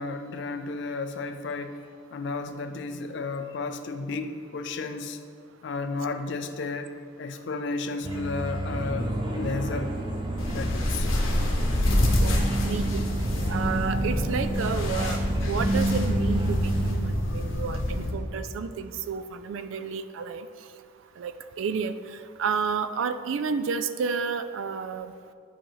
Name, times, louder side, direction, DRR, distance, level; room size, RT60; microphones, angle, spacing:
voice 1, 0.0-1.8 2.1-5.2 5.6-6.9 7.2-10.0 10.5-11.1 12.3-12.5 17.3-17.8, left 3 dB, 60° left, 8 dB, 0.5 m, -33 dB
sound 1, 8.0-16.9, right 1 dB, 25° right, 0.6 m, -29 dB
sound 2, 10.4-18.1, left 1 dB, 85° left, 1.1 m, -27 dB
voice 2, 12.2-13.0 13.5-15.2 15.5-20.5 21.2-22.0 22.4-25.1, right 5 dB, 75° right, 11 dB, 0.4 m, -31 dB
10.0 x 4.9 x 3.1 m, 2.2 s
head